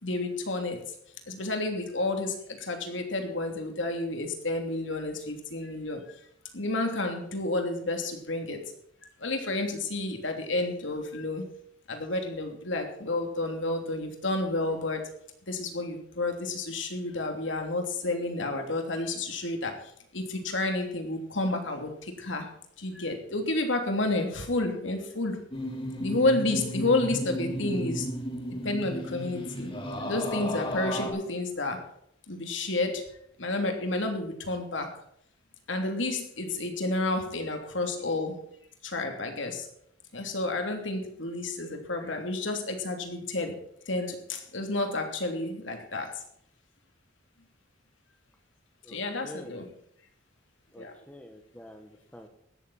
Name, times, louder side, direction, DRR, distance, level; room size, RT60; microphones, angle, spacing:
voice 1, 0.0-0.9 1.3-6.0 6.5-8.7 9.2-11.4 11.9-15.1 15.5-22.5 22.8-25.4 26.0-28.1 28.6-29.7 30.1-31.9 32.3-33.1 33.4-35.0 35.7-38.4 38.8-39.7 40.1-46.2 48.9-49.7 50.8-50.9, left 2 dB, 75° left, 4 dB, 3.0 m, -30 dB
sound 1, 25.5-31.1, equal, 30° left, 4.0 m, -34 dB
voice 2, 49.2-49.6 50.7-52.3, left 1 dB, 5° left, 5 dB, 1.3 m, -47 dB
16.0 x 12.5 x 4.3 m, 0.71 s
head